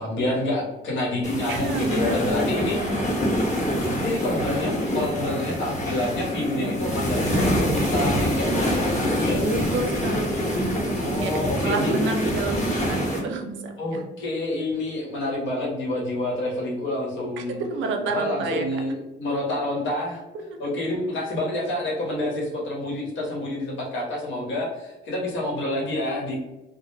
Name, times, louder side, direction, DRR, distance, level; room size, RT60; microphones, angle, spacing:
voice 1, 0.0-2.8 3.8-9.4 11.0-11.9 13.8-17.6 18.1-20.2 20.6-26.4, left 1 dB, 70° left, -2 dB, 0.9 m, -28 dB
sound 1, 1.2-13.2, equal, 35° left, 0.9 m, -25 dB
voice 2, 1.5-3.2 9.4-14.0 17.4-18.8 20.3-20.6, right 3 dB, 75° right, 4 dB, 0.5 m, -30 dB
2.1 x 2.0 x 3.1 m, 0.99 s
cardioid pair, 90°, 20 cm